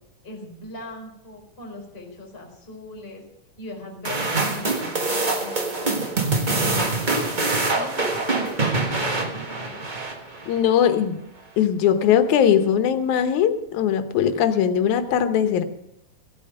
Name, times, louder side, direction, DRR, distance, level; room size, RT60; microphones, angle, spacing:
voice 1, 0.2-3.2 3.6-6.3 6.5-7.3 7.6-9.9, left 2 dB, 20° left, 1 dB, 4.5 m, -41 dB
sound 1, 4.0-10.6, right 3 dB, 40° right, 0.7 m, -24 dB
voice 2, 10.5-11.2 11.6-15.6, left 9 dB, 90° left, 9 dB, 2.4 m, -20 dB
16.0 x 8.7 x 6.6 m, 0.81 s
omnidirectional pair, 3.3 m